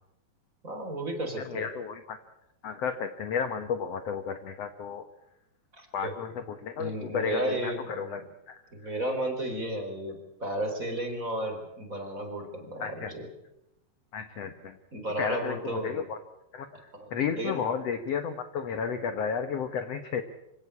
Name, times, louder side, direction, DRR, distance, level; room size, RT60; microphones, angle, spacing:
voice 1, 0.6-1.7 5.7-6.2 6.8-8.2 8.7-13.3 14.4-14.5 14.9-16.0 17.0-17.1 17.4-17.7, right 1 dB, 20° right, 4 dB, 3.8 m, -33 dB
voice 2, 1.4-2.2 2.6-5.1 5.9-8.9 12.8-13.1 14.1-14.8 15.2-16.2 16.5-20.2, left 6 dB, 70° left, 9 dB, 1.5 m, -33 dB
26.0 x 16.5 x 8.6 m, 0.87 s
omnidirectional pair, 4.5 m